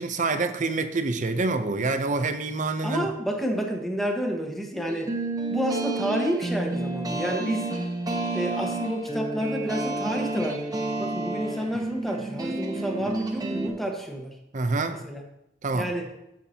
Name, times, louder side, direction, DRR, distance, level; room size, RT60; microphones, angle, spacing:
voice 1, 0.0-3.1 14.5-15.0 15.6-15.9, right 3 dB, 45° right, 9 dB, 0.7 m, -26 dB
voice 2, 2.8-5.1 5.5-7.7 8.3-10.7 11.0-14.4 14.9-15.2 15.7-16.1, equal, ahead, 1 dB, 1.4 m, -30 dB
sound 1, 4.9-13.7, right 2 dB, 20° right, 1.1 m, -30 dB
15.5 x 5.9 x 2.9 m, 0.84 s
head